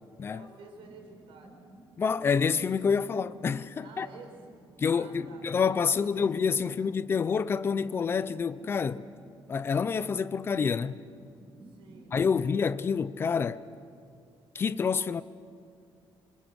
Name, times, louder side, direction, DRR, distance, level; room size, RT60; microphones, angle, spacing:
voice 1, 0.3-1.6 3.8-4.4 4.9-5.4 5.8-6.1 6.4-6.9 11.6-12.5, right 4 dB, 75° right, 4.6 m, -52 dB
sound 1, 0.8-13.5, right 2 dB, 20° right, 2.5 m, -54 dB
voice 2, 2.0-4.1 4.8-9.0 9.5-11.0 12.1-13.6 14.5-15.2, left 6 dB, 25° left, 0.6 m, -28 dB
27.0 x 25.0 x 6.3 m
cardioid pair, 180°, 9 cm